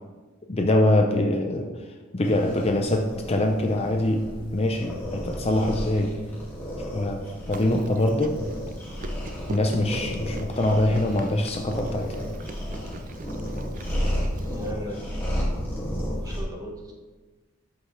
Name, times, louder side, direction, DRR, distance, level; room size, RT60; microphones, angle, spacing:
voice 1, 0.5-1.7 2.1-6.2 6.9-8.4 9.5-12.1, left 1 dB, 30° left, 3 dB, 0.6 m, -24 dB
sound 1, 2.2-16.4, equal, 10° left, 2.2 m, -33 dB
Chewing mastication, 7.5-14.7, right 2 dB, 40° right, 0.5 m, -43 dB
voice 2, 14.4-15.0 16.2-16.9, equal, 15° right, 0 dB, 1.4 m, -37 dB
13.0 x 5.5 x 3.3 m, 1.3 s
head